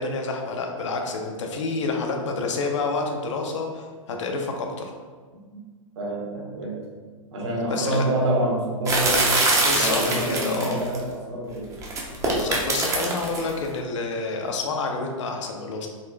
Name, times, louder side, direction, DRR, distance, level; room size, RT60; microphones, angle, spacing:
voice 1, 0.0-4.9 7.7-8.0 9.6-10.8 12.1-15.9, left 3 dB, 60° left, 2 dB, 0.5 m, -28 dB
voice 2, 6.0-6.8 7.3-9.3 9.7-11.7, right 1 dB, 55° right, -2 dB, 0.9 m, -27 dB
sound 1, 8.9-11.0 11.8-13.5, right 2 dB, 15° right, 0.5 m, -23 dB
3.8 x 2.3 x 2.2 m, 1.5 s
figure-of-eight pair, 110°, 18 cm